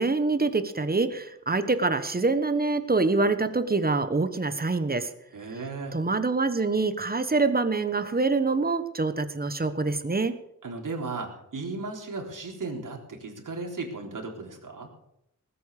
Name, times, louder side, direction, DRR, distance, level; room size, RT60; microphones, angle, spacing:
voice 1, 0.0-5.1 5.9-10.3, right 3 dB, 30° right, 10 dB, 1.3 m, -25 dB
voice 2, 5.3-6.0 10.6-14.9, right 3 dB, 75° right, 1 dB, 3.9 m, -35 dB
19.5 x 8.6 x 6.7 m, 0.79 s
wide cardioid pair, 120°, 32 cm